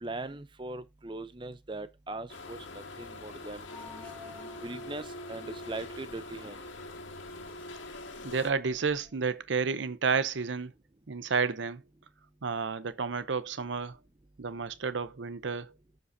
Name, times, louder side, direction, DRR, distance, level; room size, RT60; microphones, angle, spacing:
voice 1, 0.0-3.7 4.6-6.6, right 2 dB, 25° right, 0.6 m, -40 dB
sound 1, 2.3-8.5, left 2 dB, 80° left, 1.8 m, -44 dB
sound 2, 3.4-9.2, left 4 dB, 5° left, 2.1 m, -53 dB
voice 2, 8.2-10.7 11.1-11.8 12.4-14.0 14.4-15.7, right 5 dB, 75° right, 0.7 m, -31 dB
15.0 x 5.3 x 2.7 m
head